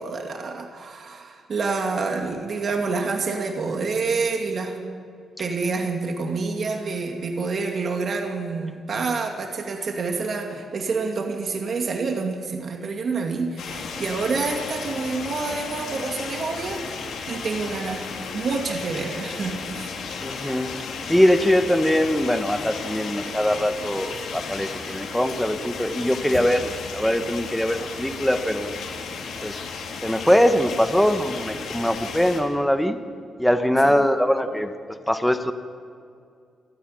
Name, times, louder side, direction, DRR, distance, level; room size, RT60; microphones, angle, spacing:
voice 1, 0.0-4.8 5.4-19.9 33.8-33.9, right 4 dB, 50° right, 2 dB, 2.3 m, -28 dB
sound 1, 13.6-32.4, left 5 dB, 85° left, 3.3 m, -34 dB
voice 2, 20.2-20.7 21.1-28.7 29.4-29.6 30.0-33.0 33.4-34.7 35.1-35.5, equal, ahead, 8 dB, 1.3 m, -22 dB
28.0 x 10.0 x 10.0 m, 2.3 s
cardioid pair, 120°, 0 cm